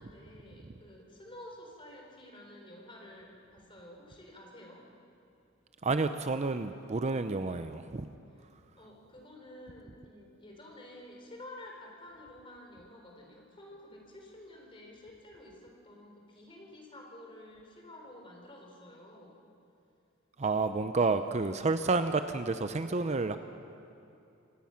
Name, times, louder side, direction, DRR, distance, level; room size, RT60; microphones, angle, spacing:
voice 1, 0.0-4.9 8.4-8.5 8.8-19.5, left 1 dB, 25° left, 0 dB, 3.9 m, -51 dB
voice 2, 5.8-8.1 20.4-23.4, right 3 dB, 35° right, 9 dB, 0.6 m, -30 dB
27.0 x 17.0 x 5.8 m, 2.7 s
head